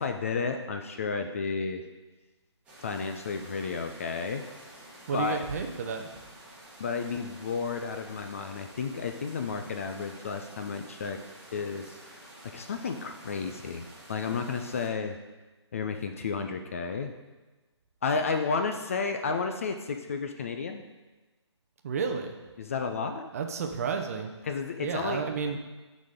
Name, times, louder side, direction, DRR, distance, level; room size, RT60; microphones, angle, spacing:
voice 1, 0.0-1.8 2.8-4.5 5.1-5.4 6.8-11.2 11.5-12.3 12.5-15.2 15.7-17.1 18.0-20.8 22.6-23.3 24.4-25.2, left 5 dB, 30° left, 6 dB, 0.4 m, -32 dB
sound 1, 2.6-14.9, right 1 dB, 10° right, 1.5 m, -50 dB
voice 2, 5.1-6.1 21.8-22.4 23.3-24.3 24.8-25.6, right 5 dB, 30° right, 5 dB, 0.6 m, -31 dB
11.5 x 4.1 x 3.7 m, 1.2 s
figure-of-eight pair, 145°, 15 cm